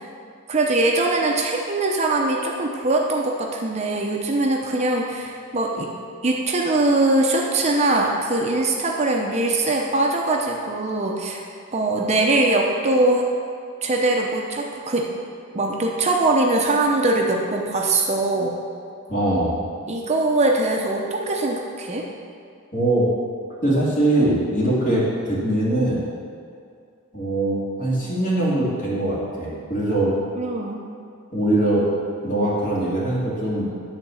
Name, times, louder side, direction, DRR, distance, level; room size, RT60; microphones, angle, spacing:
voice 1, 0.5-5.9 6.2-11.4 11.7-13.3 13.8-15.1 15.5-18.5 19.9-22.1 30.4-30.8, right 2 dB, 30° right, 0 dB, 0.7 m, -22 dB
voice 2, 19.1-19.6 22.7-23.1 23.6-26.0 27.1-30.2 31.3-31.9 32.2-33.7, right 1 dB, 35° left, -7 dB, 2.6 m, -22 dB
11.0 x 4.0 x 7.1 m, 2.3 s
head